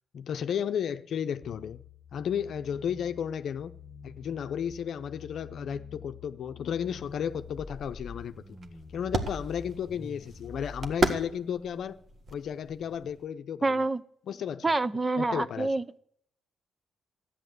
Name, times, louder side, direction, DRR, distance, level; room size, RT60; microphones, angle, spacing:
voice 1, 0.1-1.8 2.1-3.7 4.0-8.6 8.9-12.0 12.3-13.8 14.3-14.7 15.2-15.7, left 8 dB, 65° left, 0.7 m, -33 dB
sound 1, 1.4-10.9, left 5 dB, 15° left, 1.6 m, -46 dB
sound 2, 7.0-13.3, right 2 dB, 45° right, 1.6 m, -35 dB
voice 2, 13.6-14.0 14.6-16.0, right 2 dB, 20° right, 0.6 m, -27 dB
13.0 x 10.0 x 7.9 m
cardioid pair, 90°, 0 cm